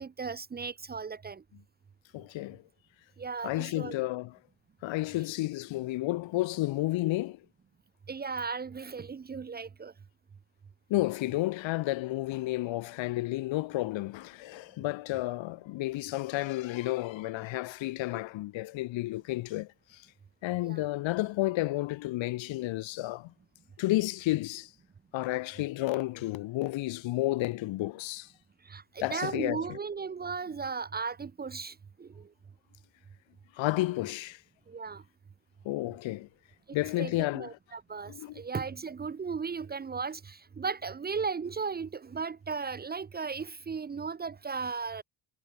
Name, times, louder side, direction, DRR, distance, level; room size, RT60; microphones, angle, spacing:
voice 1, 0.0-1.4 3.2-4.0 8.1-9.9 20.6-20.9 28.6-32.3 34.7-35.0 37.0-45.0, right 5 dB, 20° right, 1.5 m, -36 dB
voice 2, 2.1-2.6 3.4-4.4 4.8-7.4 10.9-20.1 20.4-23.3 23.8-24.7 25.1-28.3 29.0-29.8 33.5-34.4 35.6-36.3 36.7-37.5 38.1-38.4, left 18 dB, 80° left, 7.5 m, -31 dB
cardioid pair, 170°, 45 cm